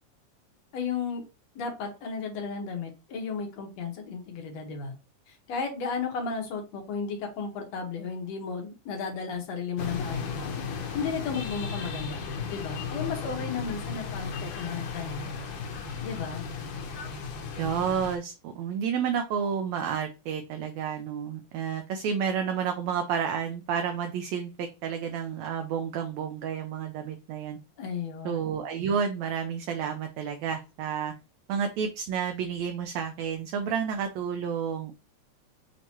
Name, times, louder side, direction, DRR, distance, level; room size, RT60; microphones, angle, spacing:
voice 1, 0.7-1.2 1.6-5.0 5.3-10.3 10.9-15.2 16.0-16.4 27.8-28.4, left 5 dB, 65° left, 2 dB, 2.1 m, -34 dB
sound 1, 9.8-18.2, left 5 dB, 85° left, 2.2 m, -35 dB
voice 2, 17.6-27.6 28.3-31.1 31.5-34.9, right 7 dB, 75° right, 5 dB, 1.7 m, -30 dB
6.4 x 2.8 x 2.9 m, 0.28 s
omnidirectional pair, 3.5 m